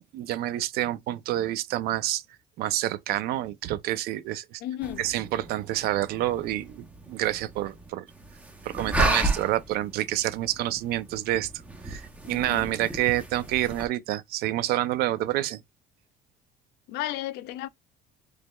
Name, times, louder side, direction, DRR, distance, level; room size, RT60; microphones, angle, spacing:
voice 1, 0.0-2.2 2.6-4.6 5.0-8.1 8.6-11.5 11.8-15.6, right 14 dB, 65° right, 0.5 m, -28 dB
voice 2, 4.6-5.0 12.2-12.7 16.9-17.7, left 13 dB, 70° left, 0.4 m, -34 dB
sound 1, 4.8-13.9, right 2 dB, 10° right, 0.6 m, -33 dB
4.9 x 3.0 x 2.2 m
cardioid pair, 175°, 17 cm